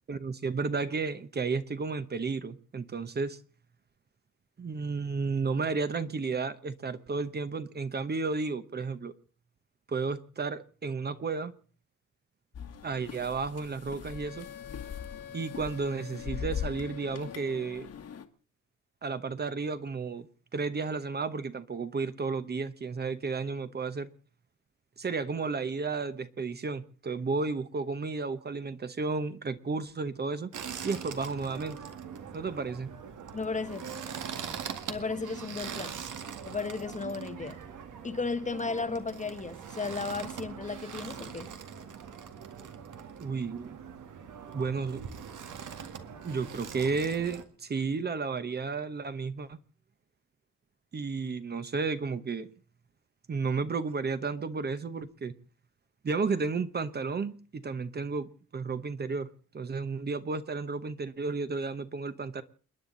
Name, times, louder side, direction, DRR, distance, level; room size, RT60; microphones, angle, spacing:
voice 1, 0.1-3.4 4.6-9.1 9.9-11.5 12.8-14.5 15.3-17.9 19.0-20.3 20.5-24.1 25.0-30.5 30.8-31.8 32.3-32.9 43.2-43.7 44.5-45.0 46.2-49.6 50.9-52.5 53.3-55.3 56.0-59.3 59.5-62.4, right 4 dB, 30° right, 1.0 m, -32 dB
sound 1, 12.5-18.3, left 8 dB, 50° left, 1.6 m, -41 dB
Wind instrument woodwind instrument, 14.0-17.8, left 10 dB, 90° left, 1.9 m, -47 dB
sound 2, 30.5-47.4, right 7 dB, 75° right, 2.0 m, -42 dB
voice 2, 33.3-33.9 34.9-36.0 36.5-37.6 38.0-41.5, left 4 dB, 25° left, 0.9 m, -34 dB
29.5 x 10.5 x 3.9 m
wide cardioid pair, 160°, 31 cm